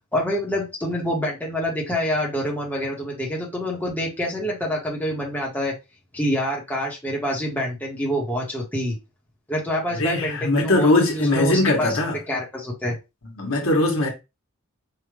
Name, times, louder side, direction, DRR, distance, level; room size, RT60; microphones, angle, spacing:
voice 1, 0.1-5.7 6.1-9.0 9.5-13.0, equal, 10° left, 1.2 m, -26 dB
voice 2, 9.9-12.2 13.4-14.1, left 2 dB, 70° left, 1.4 m, -20 dB
5.2 x 2.5 x 3.2 m
head